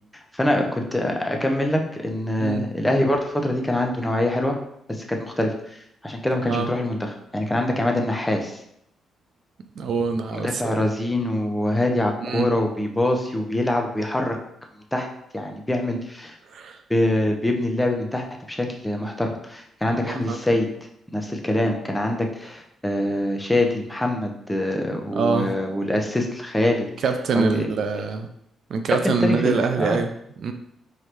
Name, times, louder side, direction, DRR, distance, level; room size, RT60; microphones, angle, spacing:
voice 1, 0.3-4.6 4.9-8.6 10.4-14.4 14.9-15.1 15.3-16.4 16.9-20.7 21.1-26.9 27.3-27.7 29.0-30.0, left 1 dB, 10° left, 2 dB, 0.7 m, -24 dB
voice 2, 9.8-10.8 12.2-12.5 16.5-16.8 20.1-20.4 25.1-25.5 27.0-28.3 28.7-30.1 30.4-30.5, right 5 dB, 65° right, 6 dB, 0.4 m, -24 dB
4.6 x 3.1 x 3.0 m, 0.75 s
cardioid pair, 75°, 0 cm